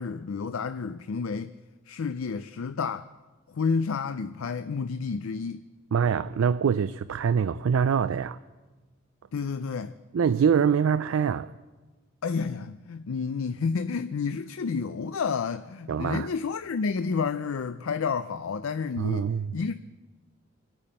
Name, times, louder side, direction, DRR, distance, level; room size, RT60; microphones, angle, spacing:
voice 1, 0.0-1.5 1.9-3.1 3.5-5.6 9.3-9.9 12.2-19.7, left 5 dB, 90° left, 0.5 m, -30 dB
voice 2, 5.9-8.4 10.1-11.5 15.9-16.3 19.0-19.5, right 7 dB, 85° right, 0.4 m, -24 dB
25.5 x 8.9 x 5.6 m
head